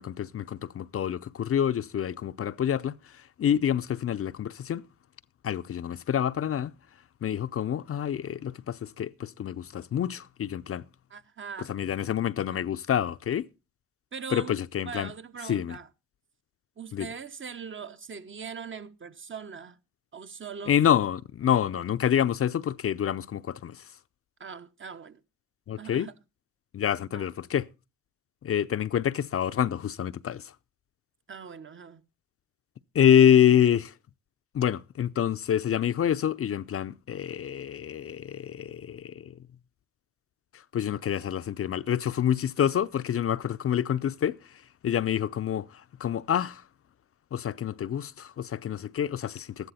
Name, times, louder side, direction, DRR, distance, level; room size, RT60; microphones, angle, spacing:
voice 1, 0.0-4.8 5.4-6.7 7.2-10.8 11.7-13.5 14.3-15.1 15.5-15.8 16.9-17.1 20.7-23.8 25.7-26.1 26.7-27.7 28.4-30.5 32.9-33.9 34.5-39.4 40.7-44.4 44.8-46.6 47.3-49.7, left 9 dB, 45° left, 0.6 m, -27 dB
voice 2, 11.1-11.7 12.5-12.6 14.1-14.5 14.8-15.9 16.8-19.8 20.1-20.8 24.4-25.2 25.8-26.1 27.1-27.3 31.3-32.0, right 6 dB, 40° right, 1.0 m, -41 dB
13.5 x 11.5 x 4.2 m
supercardioid pair, 65°, 31 cm